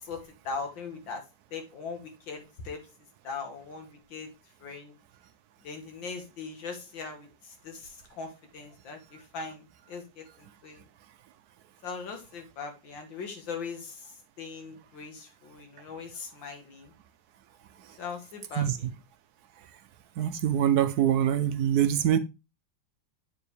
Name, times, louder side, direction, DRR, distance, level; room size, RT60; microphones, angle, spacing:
voice 1, 0.0-1.2 1.5-2.9 3.2-4.3 4.6-4.9 5.6-10.8 11.8-16.9 18.0-18.9, left 5 dB, 80° left, 2.3 m, -40 dB
voice 2, 20.2-22.2, right 10 dB, 70° right, 1.0 m, -24 dB
8.0 x 4.7 x 3.3 m
omnidirectional pair, 2.0 m